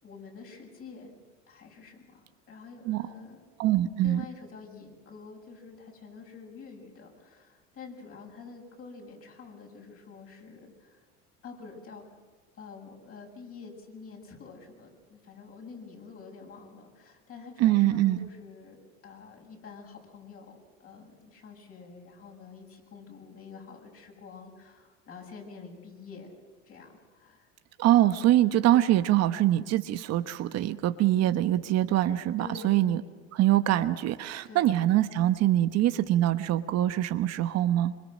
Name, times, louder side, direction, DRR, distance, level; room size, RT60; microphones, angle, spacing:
voice 1, 0.0-1.2 1.5-3.4 4.0-11.0 11.4-12.2 12.5-26.3 26.6-27.5 32.4-33.0 34.5-34.7, left 5 dB, 45° left, 0 dB, 7.9 m, -47 dB
voice 2, 3.6-4.2 17.6-18.2 27.8-33.0 33.3-37.9, right 13 dB, 50° right, 10 dB, 1.1 m, -24 dB
25.5 x 24.0 x 6.5 m, 1.4 s
supercardioid pair, 95°, 32 cm